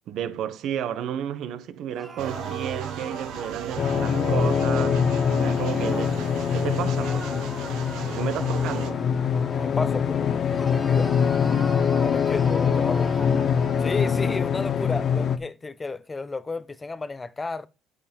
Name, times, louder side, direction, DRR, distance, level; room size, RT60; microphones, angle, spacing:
voice 1, 0.1-5.0 5.3-6.3 6.5-7.3 8.1-9.0, right 9 dB, 65° right, 1.2 m, -32 dB
sound 1, 1.9-6.2 7.0-10.1 10.5-14.4, right 1 dB, 10° right, 1.6 m, -42 dB
sound 2, 2.2-8.9, right 10 dB, 85° right, 1.5 m, -36 dB
sound 3, 3.8-15.4, left 7 dB, 45° left, 0.9 m, -23 dB
voice 2, 9.6-10.2 10.6-11.1 12.0-13.3 13.8-17.7, left 3 dB, 20° left, 0.6 m, -32 dB
8.5 x 6.7 x 5.4 m
cardioid pair, 130°, 0 cm